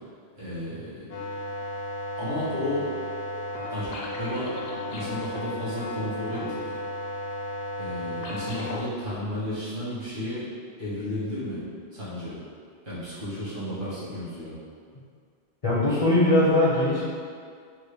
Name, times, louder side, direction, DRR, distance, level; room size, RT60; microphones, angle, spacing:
voice 1, 0.3-1.2 2.2-2.8 3.7-4.5 4.9-6.8 7.8-10.4 10.8-11.6 11.9-12.3 12.8-14.5, left 1 dB, 70° right, -10 dB, 1.6 m, -33 dB
sound 1, 1.1-8.8, left 1 dB, 70° left, 0.8 m, -34 dB
voice 2, 15.6-17.0, left 1 dB, 45° left, -7 dB, 0.5 m, -20 dB
4.5 x 2.1 x 3.3 m, 2.2 s
omnidirectional pair, 1.1 m